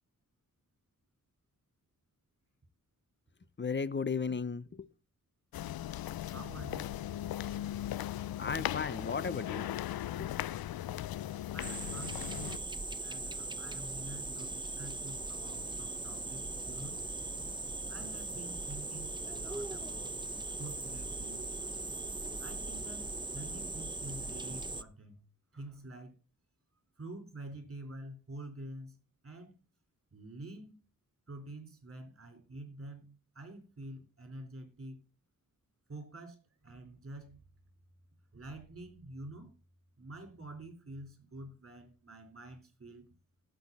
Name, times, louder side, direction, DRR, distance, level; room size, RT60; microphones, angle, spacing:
voice 1, 3.6-4.9 8.4-9.7 10.2-10.4, left 5 dB, 30° left, 0.7 m, -35 dB
sound 1, 5.5-12.6, left 12 dB, 80° left, 0.5 m, -38 dB
voice 2, 6.3-7.0 11.5-12.6 13.0-17.1 17.9-20.2 20.6-21.4 22.4-23.1 23.3-25.2 25.5-26.2 27.0-29.0 29.2-29.6 30.1-30.7 31.3-35.0 35.9-37.4 38.3-39.5 40.0-43.1, right 2 dB, 40° right, 4.3 m, -48 dB
sound 2, 11.6-24.8, right 2 dB, 15° right, 0.7 m, -39 dB
16.0 x 6.9 x 4.1 m
wide cardioid pair, 85°, 35 cm